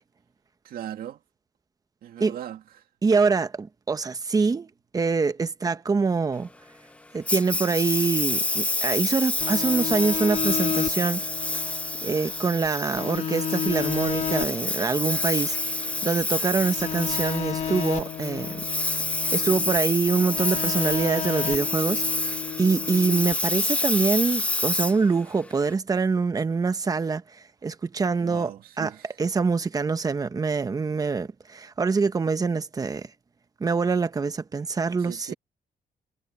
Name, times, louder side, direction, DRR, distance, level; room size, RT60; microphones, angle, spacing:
voice 1, 0.6-1.2 2.0-2.6 28.2-29.2 35.0-35.3, right 11 dB, 75° right, 2.2 m, -38 dB
voice 2, 3.0-4.7 4.9-6.5 7.1-11.2 12.0-15.6 16.0-18.6 19.3-22.0 22.6-27.2 27.6-28.5 28.8-28.9 29.2-33.1 33.6-35.3, right 4 dB, 25° right, 1.1 m, -25 dB
Engine, 7.3-25.7, left 2 dB, 10° left, 0.6 m, -28 dB
sound 1, 9.4-12.7 13.0-16.2 16.6-19.8 20.1-23.3, left 8 dB, 45° left, 2.0 m, -32 dB
cardioid pair, 140°, 15 cm